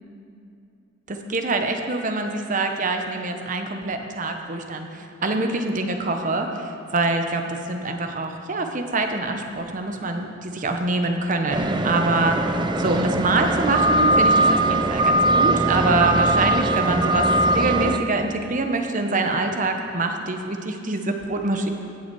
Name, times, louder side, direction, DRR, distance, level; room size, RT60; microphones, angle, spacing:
voice 1, 1.1-4.9 5.2-17.3 17.5-21.7, right 2 dB, 40° right, 5 dB, 0.9 m, -25 dB
sound 1, 11.5-18.0, right 1 dB, 25° right, 0.5 m, -20 dB
16.0 x 7.1 x 4.7 m, 2.6 s
head